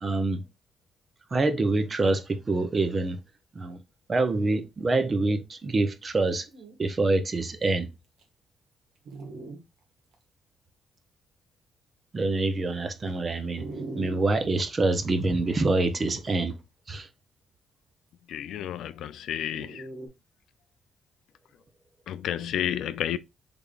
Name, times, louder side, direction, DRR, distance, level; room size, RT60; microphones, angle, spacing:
voice 1, 0.0-0.4 1.3-3.2 3.5-3.8 4.1-6.5 6.8-7.9 12.1-13.7 14.0-16.5 16.9-17.1, right 2 dB, 30° right, 0.7 m, -26 dB
Dog, 6.1-6.2 6.5-6.7 7.4-7.5 8.2-8.3 9.0-9.6 10.1-10.2 13.6-14.6 16.1-16.6 19.5-20.1, right 3 dB, 70° right, 1.2 m, -39 dB
voice 2, 18.3-19.8 22.1-23.2, left 10 dB, 80° left, 0.3 m, -31 dB
3.6 x 3.5 x 2.4 m
cardioid pair, 115°, 0 cm